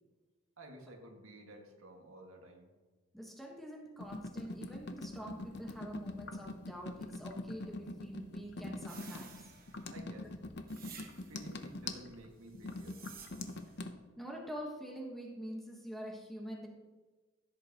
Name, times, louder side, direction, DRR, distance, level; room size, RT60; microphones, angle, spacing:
voice 1, 0.6-2.7 9.9-10.3 11.3-13.0, right 1 dB, 85° right, 1 dB, 1.9 m, -52 dB
voice 2, 3.1-9.5 14.2-16.7, equal, ahead, -1 dB, 1.3 m, -45 dB
sound 1, 4.0-13.9, left 2 dB, 55° left, 0.8 m, -44 dB
sound 2, 8.8-10.0 10.7-11.6 12.5-13.8, right 7 dB, 45° right, 1.3 m, -54 dB
15.0 x 8.0 x 3.0 m, 1.3 s
head